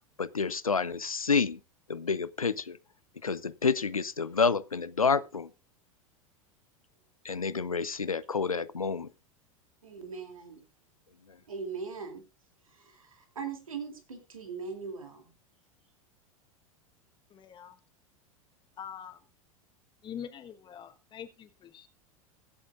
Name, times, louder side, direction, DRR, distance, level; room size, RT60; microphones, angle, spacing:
voice 1, 0.2-1.6 1.9-2.8 3.2-5.5 7.2-9.1, left 5 dB, 85° left, 0.6 m, -29 dB
voice 2, 9.8-10.7 11.5-12.2 12.6-15.3, right 5 dB, 75° right, 2.8 m, -40 dB
voice 3, 17.3-17.8 18.8-19.2 20.0-21.9, left 8 dB, 25° left, 1.2 m, -44 dB
23.5 x 8.1 x 2.5 m
figure-of-eight pair, 85°, 18 cm